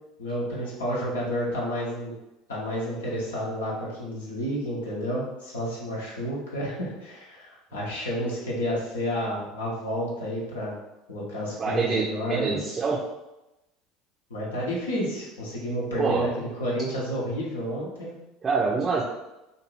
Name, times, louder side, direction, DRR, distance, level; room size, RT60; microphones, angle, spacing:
voice 1, 0.2-2.1 2.5-10.8 11.1-12.6 14.3-18.1, equal, 75° left, -5 dB, 0.8 m, -30 dB
voice 2, 11.6-13.0 16.0-16.3 18.4-19.0, right 4 dB, 30° right, -4 dB, 0.5 m, -26 dB
2.6 x 2.6 x 3.0 m, 0.95 s
figure-of-eight pair, 70°, 0 cm